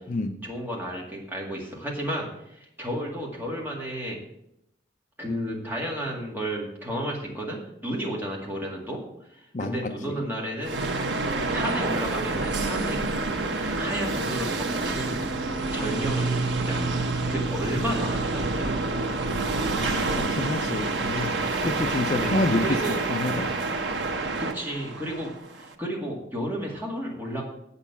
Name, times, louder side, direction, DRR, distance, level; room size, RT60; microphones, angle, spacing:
voice 1, 0.4-4.2 5.2-9.0 9.3-10.8 11.5-15.2 15.7-18.9 22.2-23.0 24.4-25.3 25.6-27.4, equal, 10° right, -2 dB, 2.0 m, -33 dB
voice 2, 9.5-10.2 19.7-22.8 23.1-23.5, left 2 dB, 40° left, 6 dB, 0.5 m, -28 dB
sound 1, 10.6-25.7, right 3 dB, 90° right, 1.0 m, -28 dB
sound 2, 14.6-22.5, right 1 dB, 60° left, 3.4 m, -40 dB
Bass guitar, 16.0-22.3, right 3 dB, 50° right, 0.5 m, -34 dB
8.1 x 6.8 x 7.0 m, 0.80 s
head